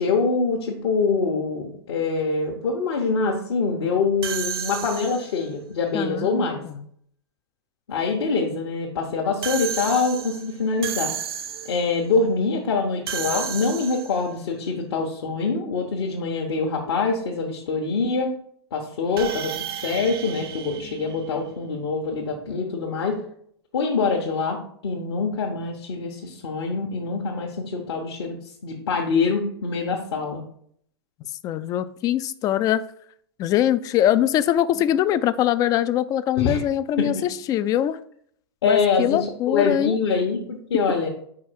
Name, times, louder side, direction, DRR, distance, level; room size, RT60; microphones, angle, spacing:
voice 1, 0.0-6.6 7.9-11.1 11.6-18.3 18.7-23.2 23.7-28.4 28.6-30.4 36.4-36.6 37.0-37.1 38.6-41.1, left 4 dB, 60° left, -2 dB, 1.0 m, -24 dB
sound 1, 4.2-5.5 9.4-11.9 13.1-14.3 19.2-21.7, right 8 dB, 60° right, 0.6 m, -32 dB
voice 2, 5.9-6.9 31.4-32.8 33.4-38.0 38.6-40.0, left 11 dB, 25° left, 14 dB, 0.3 m, -22 dB
4.8 x 4.6 x 4.5 m, 0.65 s
figure-of-eight pair, 100°, 14 cm